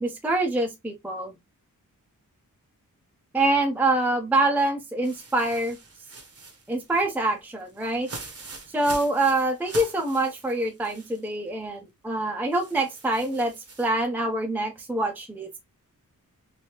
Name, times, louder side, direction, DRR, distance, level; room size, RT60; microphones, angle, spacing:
voice 1, 0.0-1.4 3.3-5.8 6.7-8.1 8.7-13.5 13.8-15.5, right 2 dB, 5° right, 0.5 m, -25 dB
sound 1, 5.0-11.3 11.6-11.7 12.5-13.9, right 3 dB, 45° right, 0.8 m, -43 dB
3.2 x 2.6 x 2.9 m
wide cardioid pair, 165°, 33 cm